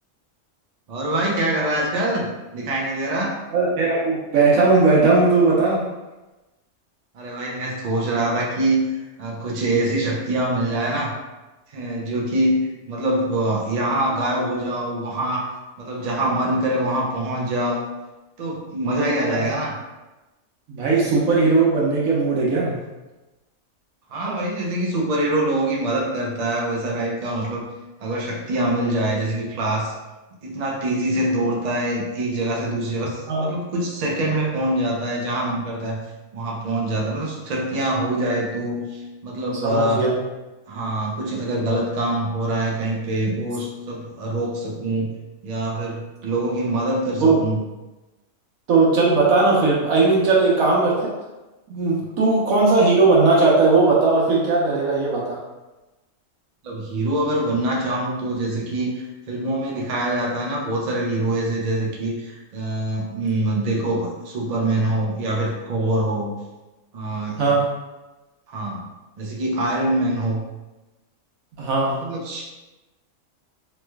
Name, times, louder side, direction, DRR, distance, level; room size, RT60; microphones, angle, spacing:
voice 1, 0.9-3.4 7.1-8.9 9.2-11.1 11.7-15.5 15.8-17.9 18.4-19.7 24.1-27.7 28.0-29.9 30.4-36.0 36.3-40.0 40.7-45.1 45.4-47.6 52.0-52.1 56.6-66.4 66.9-67.4 68.5-68.9 69.2-70.4 72.0-72.4, right 1 dB, 55° right, -2 dB, 0.4 m, -24 dB
voice 2, 3.5-5.8 19.3-19.5 20.7-22.8 24.2-24.3 33.3-33.5 39.6-40.1 47.2-47.4 48.7-51.1 51.7-55.4 67.4-67.7 71.6-72.0, right 3 dB, 75° right, -4 dB, 1.2 m, -18 dB
3.2 x 3.0 x 2.2 m, 1.1 s
omnidirectional pair, 1.4 m